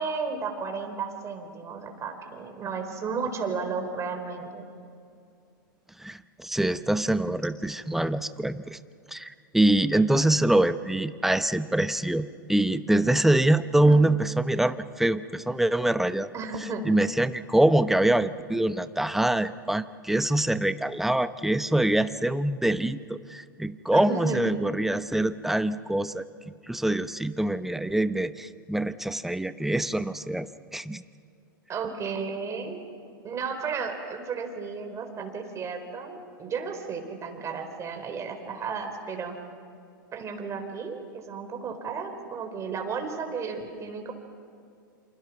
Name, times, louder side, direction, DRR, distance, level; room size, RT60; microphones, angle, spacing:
voice 1, 0.0-4.6 13.7-14.1 16.3-16.8 23.9-24.4 31.7-32.8 33.2-39.4 40.1-44.1, right 5 dB, 25° right, 4 dB, 4.2 m, -33 dB
voice 2, 6.0-8.8 9.1-16.3 16.6-26.2 26.7-31.0, right 1 dB, ahead, 13 dB, 0.8 m, -24 dB
28.0 x 27.0 x 6.0 m, 2.4 s
hypercardioid pair, 100°, 11 cm